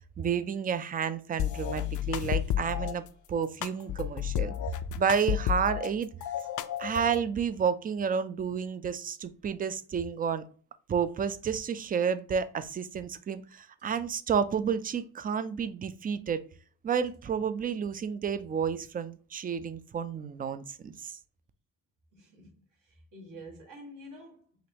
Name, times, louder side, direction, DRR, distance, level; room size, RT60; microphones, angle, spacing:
voice 1, 0.2-3.0 3.3-4.5 4.9-6.1 6.8-10.4 10.9-16.4 16.8-21.2, right 7 dB, 25° right, 0.4 m, -30 dB
sound 1, 1.4-2.9 3.6-5.9 6.2-7.2, left 11 dB, 65° left, 0.5 m, -31 dB
voice 2, 22.1-24.7, equal, 70° right, 1.9 m, -49 dB
5.0 x 3.0 x 2.8 m
cardioid pair, 115°, 33 cm